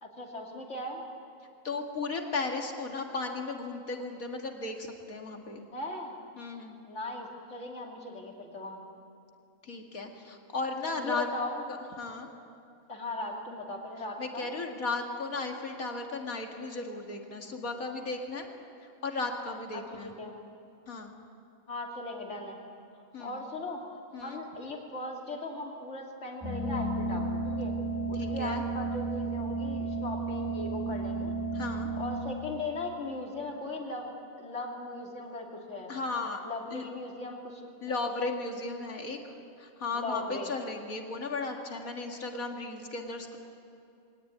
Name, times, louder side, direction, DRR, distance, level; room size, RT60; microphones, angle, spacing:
voice 1, 0.0-1.0 5.7-6.2 6.8-8.8 11.0-11.6 12.9-14.5 19.7-20.3 21.7-22.6 23.2-23.8 24.2-27.7 28.1-31.3 32.0-36.0 36.4-37.6 37.9-38.0 39.9-40.5, left 2 dB, 55° left, -1 dB, 3.2 m, -38 dB
voice 2, 1.6-5.6 6.4-6.8 9.6-11.3 11.7-12.3 14.2-18.5 19.0-20.1 20.9-21.1 23.1-23.5 24.1-24.4 28.1-28.6 31.5-31.9 35.9-36.4 36.7-36.8 37.8-43.4, left 3 dB, 75° left, 3 dB, 2.4 m, -35 dB
sound 1, 26.4-32.2, right 2 dB, 10° right, 6.8 m, -33 dB
23.0 x 18.5 x 9.4 m, 2.5 s
omnidirectional pair, 1.5 m